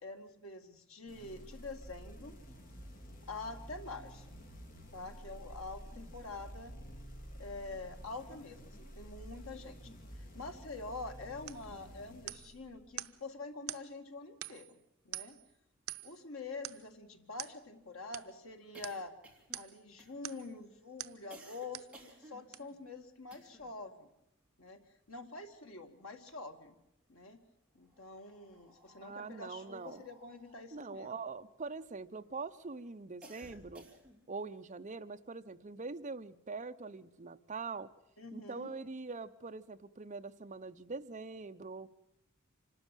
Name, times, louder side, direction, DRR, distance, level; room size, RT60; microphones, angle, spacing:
voice 1, 0.0-2.4 3.3-4.3 4.9-6.8 7.4-10.0 10.3-14.8 15.1-15.4 16.0-19.1 19.5-24.1 24.6-24.8 25.1-26.8 27.1-27.4 27.7-31.1 38.2-38.7, left 3 dB, 75° left, 5 dB, 2.1 m, -46 dB
sound 1, 1.1-13.0, equal, 40° left, 2.8 m, -51 dB
sound 2, 11.5-11.7 12.3-12.6 13.0-13.2 13.7-13.9 14.4-14.7 15.1-15.5 15.9-16.2 16.6-16.9 17.4-17.6 18.1-18.3 18.8-19.0 19.5-19.8 20.2-20.5 21.0-21.2 21.7-22.0 22.5-22.6, right 13 dB, 75° right, 0.7 m, -44 dB
sound 3, 15.6-15.7 16.0-16.1 16.4-23.8 24.1-25.7 26.0-27.0 27.7-32.2 32.6-34.4, right 1 dB, 5° right, 2.8 m, -59 dB
voice 2, 29.0-30.0 30.7-33.9 34.3-37.9 38.3-41.9, right 4 dB, 35° right, 8 dB, 0.7 m, -43 dB
25.5 x 13.0 x 9.1 m, 0.82 s
head